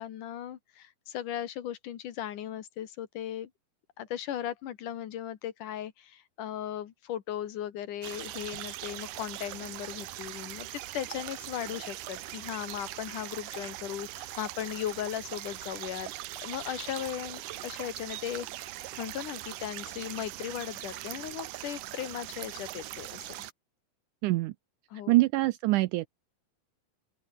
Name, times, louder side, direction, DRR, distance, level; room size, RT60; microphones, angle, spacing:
voice 1, 0.0-3.5 4.0-16.1 16.4-23.3 24.9-25.1, left 11 dB, 65° left, 2.9 m, -37 dB
sound 1, 8.0-23.5, right 15 dB, 70° right, 2.4 m, -41 dB
voice 2, 24.2-24.5 25.1-26.1, right 19 dB, 90° right, 1.8 m, -24 dB
open air
omnidirectional pair, 4.3 m